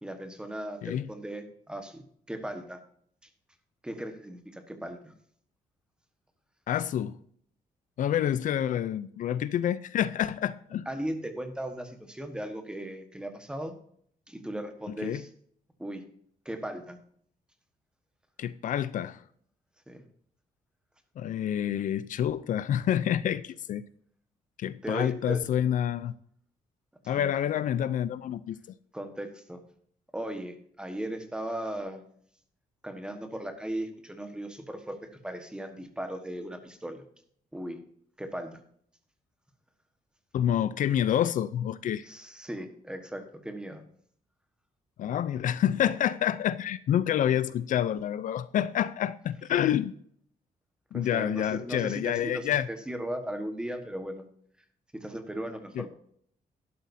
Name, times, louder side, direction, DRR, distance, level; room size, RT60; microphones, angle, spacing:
voice 1, 0.0-2.8 3.8-5.1 10.8-13.8 14.3-15.3 15.8-16.0 16.4-17.0 19.9-20.0 24.8-25.4 27.0-27.3 28.9-29.6 30.1-32.0 32.8-37.0 37.5-37.8 38.2-38.5 42.0-43.8 50.9-54.3 54.9-55.9, right 1 dB, 5° right, 1.4 m, -37 dB
voice 2, 6.7-7.2 8.0-10.9 15.0-15.2 18.4-19.2 21.2-23.9 24.6-26.1 27.1-28.6 40.3-42.1 45.0-49.9 50.9-52.7 55.8-55.9, left 10 dB, 65° left, 0.5 m, -28 dB
12.0 x 11.5 x 2.7 m
wide cardioid pair, 170°, 14 cm